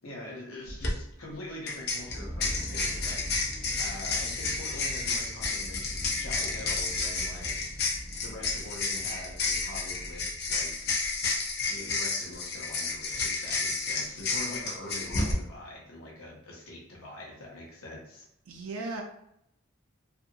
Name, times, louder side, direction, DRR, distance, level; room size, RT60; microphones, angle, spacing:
voice 1, 0.0-3.4 3.8-7.7 8.2-10.7 11.7-18.2, left 1 dB, 85° left, -2 dB, 0.8 m, -44 dB
sound 1, 0.7-0.9 1.7-15.3, left 4 dB, 50° left, 0.6 m, -31 dB
sound 2, 1.9-11.5, equal, ahead, 0.6 m, -42 dB
voice 2, 18.5-19.0, right 3 dB, 90° right, 1 dB, 0.4 m, -37 dB
2.7 x 2.5 x 2.6 m, 0.76 s
head